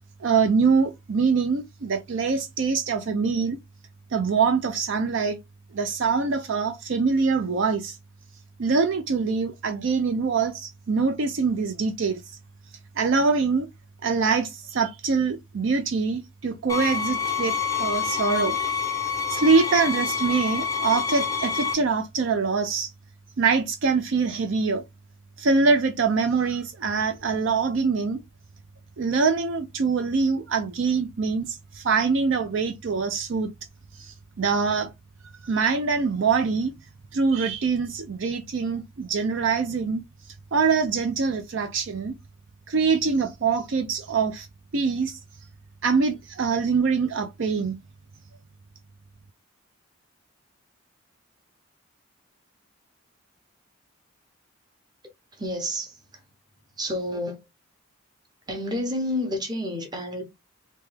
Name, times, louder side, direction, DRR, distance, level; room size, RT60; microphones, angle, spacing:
voice 1, 0.2-3.6 4.1-5.4 5.7-8.0 8.6-12.2 13.0-13.7 14.0-18.6 19.3-22.9 23.4-24.8 25.4-28.2 29.0-33.5 34.0-34.9 35.4-36.7 37.1-40.0 40.5-42.1 42.7-44.5 44.7-45.2 45.8-47.8, right 4 dB, 60° right, 0.4 m, -24 dB
sound 1, 16.7-21.7, left 6 dB, 15° left, 0.4 m, -27 dB
voice 2, 55.3-56.2 56.8-57.4 58.5-60.2, left 1 dB, 20° right, 0.8 m, -30 dB
3.0 x 2.2 x 3.2 m
head